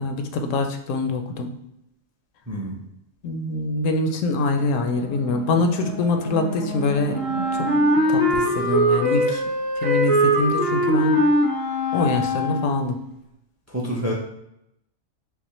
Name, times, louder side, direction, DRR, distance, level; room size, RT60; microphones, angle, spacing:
voice 1, 0.0-1.5 3.2-7.2 7.5-7.7 8.1-9.4 9.8-11.2 11.9-13.0, left 3 dB, 90° left, 6 dB, 1.0 m, -24 dB
voice 2, 2.5-2.8 13.7-14.1, equal, 20° right, -1 dB, 0.4 m, -27 dB
sound 1, 4.4-9.5, equal, 75° right, 1.6 m, -37 dB
Wind instrument woodwind instrument, 7.1-12.9, equal, 55° right, 1.8 m, -21 dB
5.6 x 2.0 x 3.0 m, 0.81 s
omnidirectional pair, 1.3 m